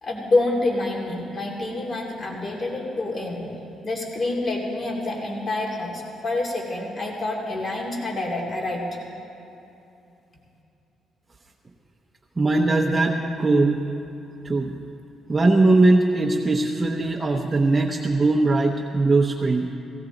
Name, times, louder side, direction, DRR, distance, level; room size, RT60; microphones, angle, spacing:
voice 1, 0.0-3.5 3.8-8.9, left 2 dB, 40° left, -1 dB, 2.7 m, -27 dB
voice 2, 12.4-13.8 14.4-14.7 15.3-19.7, right 2 dB, 20° right, -1 dB, 0.9 m, -20 dB
17.0 x 16.5 x 4.0 m, 2.8 s
cardioid pair, 90°, 0 cm